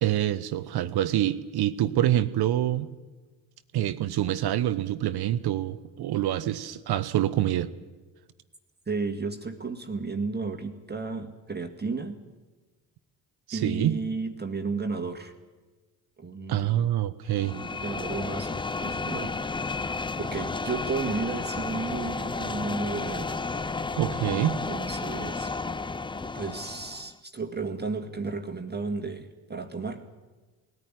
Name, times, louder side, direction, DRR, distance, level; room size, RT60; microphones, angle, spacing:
voice 1, 0.0-2.9 3.7-7.7 13.5-14.0 16.5-17.6 24.0-24.6, right 12 dB, 50° right, 13 dB, 1.1 m, -26 dB
voice 2, 8.9-12.2 13.5-15.3 16.2-16.9 17.4-19.3 20.2-23.3 24.3-25.5 26.3-30.0, right 4 dB, 20° right, 5 dB, 2.0 m, -33 dB
sound 1, 17.3-27.1, left 3 dB, 10° left, 0.6 m, -32 dB
20.0 x 14.0 x 9.9 m, 1.3 s
hypercardioid pair, 55°, 50 cm